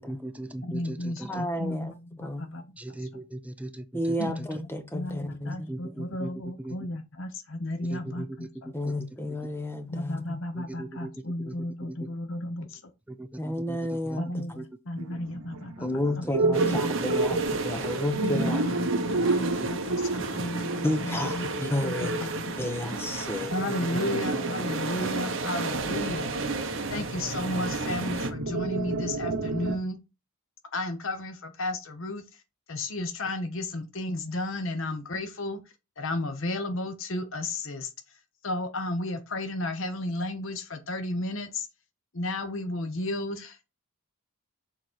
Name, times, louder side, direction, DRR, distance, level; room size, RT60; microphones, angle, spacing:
voice 1, 0.0-1.4 2.8-4.5 5.7-6.3 6.6-6.8 7.8-8.5 10.5-11.1 11.5-11.6 11.8-12.0 13.1-14.2 14.6-14.7 15.8-15.9 19.6-19.7 23.7-24.2, right 1 dB, 5° right, 0.3 m, -39 dB
voice 2, 0.6-2.6 4.2-4.5 4.9-9.0 9.9-12.8 14.2-16.9 17.3-17.4 18.2-21.5 21.8-22.7 23.5-26.3 26.9-30.0 30.7-32.2 32.7-35.6 36.0-37.9 38.4-41.7 42.1-43.7, left 1 dB, 60° left, 0.9 m, -33 dB
voice 3, 1.2-2.6 3.9-6.0 8.7-10.4 13.4-14.4 15.8-18.6 20.8-22.2 22.6-23.5, left 1 dB, 10° left, 0.9 m, -32 dB
sound 1, 15.0-22.4 22.7-22.8 23.0-23.1 23.5-29.8, right 3 dB, 85° right, 1.1 m, -31 dB
sound 2, 16.5-28.3, right 3 dB, 55° right, 1.0 m, -33 dB
6.6 x 4.0 x 4.4 m
head